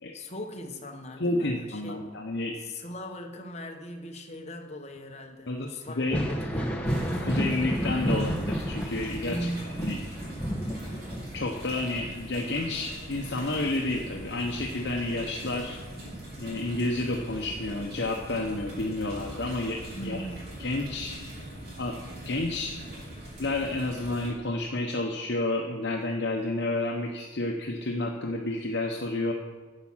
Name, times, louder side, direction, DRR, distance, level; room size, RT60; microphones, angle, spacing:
voice 1, 0.1-2.2 2.6-6.8 9.2-10.0 19.9-20.5, equal, 35° left, 3 dB, 1.1 m, -39 dB
voice 2, 1.2-2.5 5.5-6.2 7.2-10.0 11.3-15.8 16.4-20.2 20.6-21.2 21.8-22.0 22.2-22.7 23.4-29.3, left 2 dB, 60° left, 1 dB, 0.9 m, -30 dB
Thunder, 5.9-15.3 15.7-16.9 18.4-18.5 19.3-19.5, equal, 5° left, 1.1 m, -32 dB
sound 1, 6.9-24.3, right 1 dB, 50° right, 3.8 m, -42 dB
10.5 x 7.4 x 7.3 m, 1.4 s
head